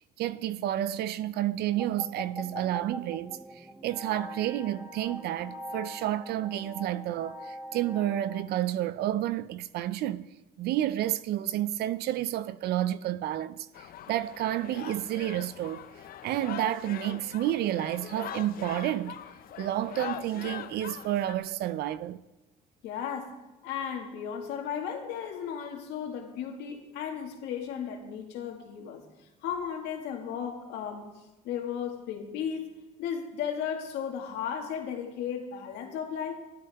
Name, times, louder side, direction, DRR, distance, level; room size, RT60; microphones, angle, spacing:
voice 1, 0.2-10.3 10.6-13.7 14.1-15.8 16.2-19.2 19.6-22.2, right 13 dB, 75° right, 0.5 m, -30 dB
sound 1, 1.7-8.4, equal, 20° right, 1.4 m, -43 dB
sound 2, 13.7-21.3, left 10 dB, 60° left, 0.7 m, -42 dB
voice 2, 22.8-23.4 23.6-29.0 29.4-31.1 31.4-32.7 33.0-36.3, left 8 dB, 85° left, 2.0 m, -35 dB
15.0 x 11.5 x 3.5 m
cardioid pair, 110°, 17 cm